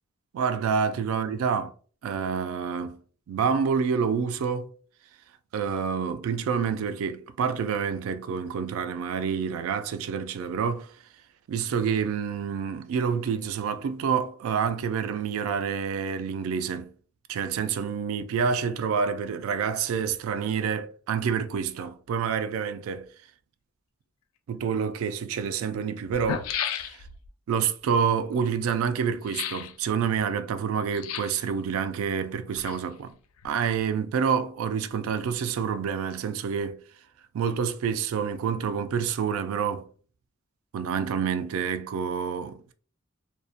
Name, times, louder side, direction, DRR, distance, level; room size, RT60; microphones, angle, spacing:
voice 1, 0.3-1.7 2.0-3.0 3.3-4.7 5.5-10.9 11.5-16.9 17.3-23.1 24.5-27.1 27.5-33.1 33.4-36.8 37.3-39.9 40.7-42.7, right 6 dB, 80° right, 0.3 m, -28 dB
sound 1, 24.8-24.9 25.7-25.8 26.0-27.3 29.2-29.7 30.9-31.5 32.3-33.1 33.4-33.5, left 8 dB, 85° left, 0.3 m, -33 dB
2.5 x 2.1 x 2.4 m
head